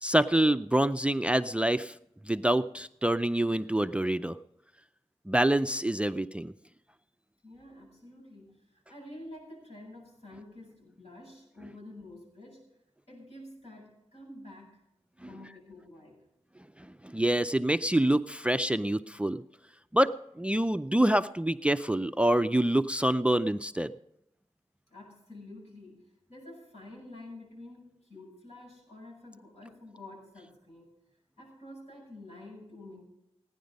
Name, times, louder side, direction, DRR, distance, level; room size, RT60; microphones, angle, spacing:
voice 1, 0.0-2.0 2.3-4.4 5.3-6.5 16.8-19.4 19.9-23.9, right 1 dB, 10° right, 13 dB, 0.4 m, -26 dB
voice 2, 7.4-12.8 13.1-14.8 15.2-16.2 24.9-30.9 31.4-33.0, left 1 dB, 65° left, -1 dB, 7.1 m, -49 dB
16.5 x 10.5 x 5.2 m, 0.82 s
wide cardioid pair, 85°, 12 cm